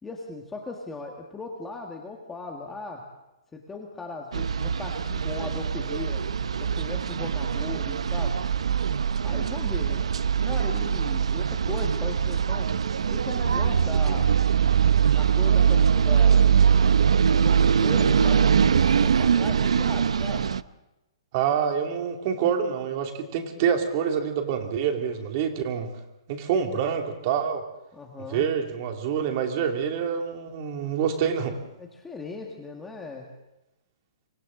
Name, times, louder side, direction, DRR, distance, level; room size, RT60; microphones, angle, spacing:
voice 1, 0.0-3.0 3.5-6.3 6.6-8.4 9.2-10.1 10.4-12.7 13.1-14.3 15.1-16.5 17.1-20.5 27.9-28.4 31.8-33.3, left 3 dB, 5° left, 1 dB, 1.6 m, -38 dB
sound 1, 4.3-20.6, right 7 dB, 90° right, 0.7 m, -22 dB
voice 2, 21.3-25.9 26.3-27.6 28.3-31.6, right 7 dB, 35° right, 4 dB, 2.5 m, -26 dB
29.5 x 24.5 x 3.8 m, 0.94 s
hypercardioid pair, 165°, 3 cm